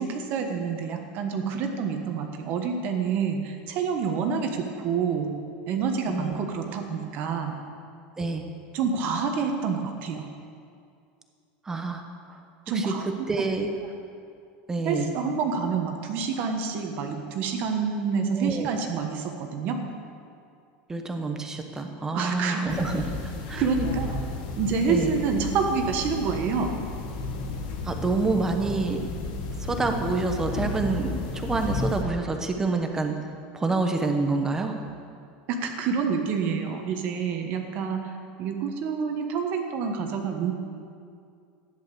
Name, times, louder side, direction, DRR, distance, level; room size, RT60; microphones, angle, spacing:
voice 1, 0.0-5.4 5.7-7.6 8.7-10.3 12.7-13.1 14.8-19.9 22.1-22.8 23.6-24.1 24.6-26.7 35.5-40.5, right 5 dB, 40° right, 4 dB, 1.4 m, -28 dB
voice 2, 11.7-12.0 12.3-12.4 12.7-12.8 13.3-13.7 14.7-15.1 18.3-18.7 20.9-23.0 23.5-23.6 24.9-25.1 27.8-29.0 29.6-33.1 33.5-34.7, right 3 dB, 10° right, 4 dB, 1.1 m, -27 dB
sound 1, 22.7-32.0, left 3 dB, 65° left, 2.2 m, -33 dB
14.5 x 10.5 x 6.9 m, 2.4 s
supercardioid pair, 170°, 5 cm